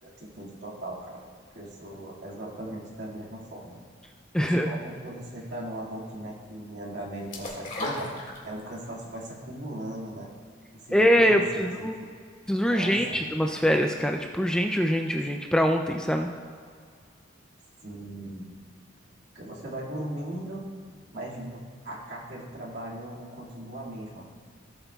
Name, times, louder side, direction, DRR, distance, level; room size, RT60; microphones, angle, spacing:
voice 1, 0.0-1.3 1.5-3.8 4.4-8.1 8.4-10.3 10.7-11.9 12.7-13.3 17.8-18.5 19.1-20.6 21.1-24.2, right 1 dB, 60° right, -4 dB, 2.1 m, -38 dB
voice 2, 4.3-4.7 10.9-11.9 12.5-16.3, equal, 5° left, 3 dB, 0.3 m, -23 dB
sound 1, 7.3-8.9 9.2-9.3, left 1 dB, 40° left, 2.0 m, -34 dB
17.0 x 7.8 x 2.3 m, 2.1 s
head